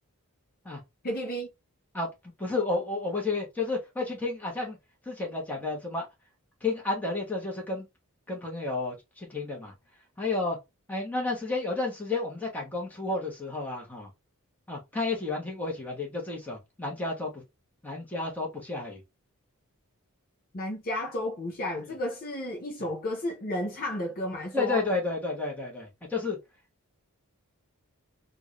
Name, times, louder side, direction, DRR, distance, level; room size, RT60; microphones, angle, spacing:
voice 1, 1.0-1.5 20.5-24.8, left 1 dB, 40° left, 0.7 m, -32 dB
voice 2, 2.4-4.8 5.0-6.1 6.6-7.9 8.3-9.7 10.2-10.6 10.9-14.1 14.7-17.4 17.8-19.0 24.5-26.4, left 3 dB, 5° left, 1.4 m, -31 dB
3.7 x 2.6 x 3.2 m
head